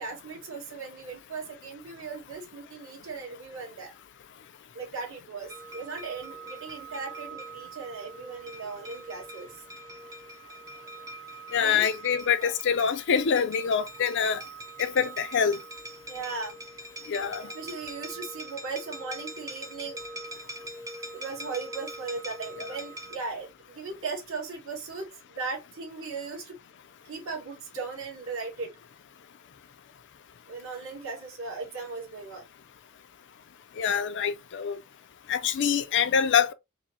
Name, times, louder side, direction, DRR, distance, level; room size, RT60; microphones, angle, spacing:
voice 1, 0.0-3.9 4.7-9.6 11.6-11.9 12.4-12.5 16.1-16.6 17.5-20.0 21.1-26.6 27.0-28.7 30.5-32.4, right 4 dB, 70° right, 1.7 m, -38 dB
sound 1, 5.5-23.2, right 2 dB, 15° right, 0.4 m, -43 dB
voice 2, 11.5-14.4 14.8-15.6 17.1-17.4 33.8-34.8 35.3-36.5, left 7 dB, 55° left, 0.4 m, -25 dB
4.7 x 2.1 x 2.8 m
head